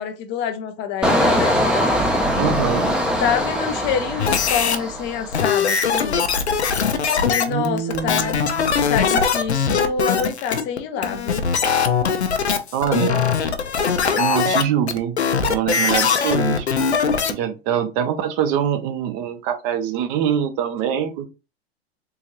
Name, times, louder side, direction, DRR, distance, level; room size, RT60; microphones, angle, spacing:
voice 1, 0.0-1.6 2.9-3.0 3.2-6.2 7.1-8.4 8.9-11.5, left 7 dB, 35° left, 0.6 m, -26 dB
Engine, 1.0-5.7 6.1-6.4, equal, 5° right, 0.6 m, -22 dB
voice 2, 2.4-2.8 7.5-8.9 12.7-13.3 14.1-15.2 15.5-16.7 17.3-21.3, right 9 dB, 40° right, 0.7 m, -24 dB
sound 1, 4.2-4.8 5.3-17.3, left 6 dB, 90° left, 0.6 m, -21 dB
3.7 x 2.6 x 2.9 m
hypercardioid pair, 105°, 32 cm